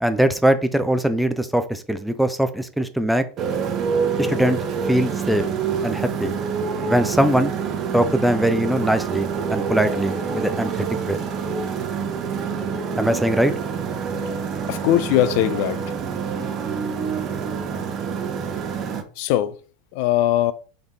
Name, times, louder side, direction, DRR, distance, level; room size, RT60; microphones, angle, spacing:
voice 1, 0.0-3.2 4.2-4.6 4.9-5.4 5.8-6.3 6.9-7.5 7.9-11.2 13.0-13.5, right 1 dB, ahead, 0.5 m, -21 dB
Motorcycle, 3.4-19.0, right 6 dB, 40° right, 0.7 m, -26 dB
voice 2, 14.7-15.8 19.2-19.6 19.9-20.5, left 13 dB, 65° left, 0.3 m, -20 dB
3.9 x 3.4 x 3.1 m
hypercardioid pair, 105°, 0 cm